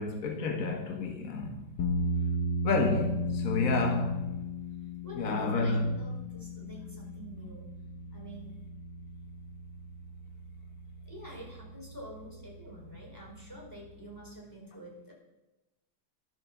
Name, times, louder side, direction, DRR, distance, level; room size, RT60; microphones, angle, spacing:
voice 1, 0.0-1.7 2.6-4.4 5.2-6.0, left 3 dB, 50° left, 1.5 m, -30 dB
sound 1, 1.8-14.3, left 1 dB, 70° left, 1.8 m, -36 dB
voice 2, 5.0-7.7 8.1-8.6 11.0-15.1, equal, 10° left, 4.3 m, -47 dB
11.5 x 11.0 x 7.1 m
omnidirectional pair, 2.2 m